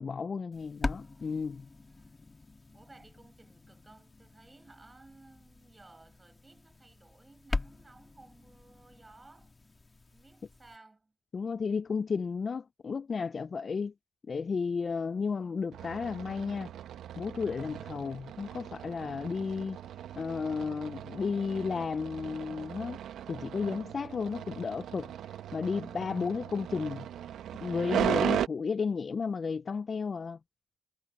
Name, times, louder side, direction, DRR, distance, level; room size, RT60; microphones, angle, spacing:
voice 1, 0.0-1.7 11.3-13.9 14.3-16.7 17.2-19.8 20.2-23.0 23.3-25.1 25.5-27.1 27.6-30.4, left 5 dB, 40° left, 0.4 m, -33 dB
sound 1, 0.5-10.8, left 3 dB, 25° left, 1.7 m, -42 dB
voice 2, 0.6-1.0 1.9-2.5 2.7-9.7 10.1-11.1, right 2 dB, 20° right, 8.0 m, -58 dB
sound 2, 15.7-28.5, right 10 dB, 75° right, 1.2 m, -37 dB
cardioid pair, 90°, 0 cm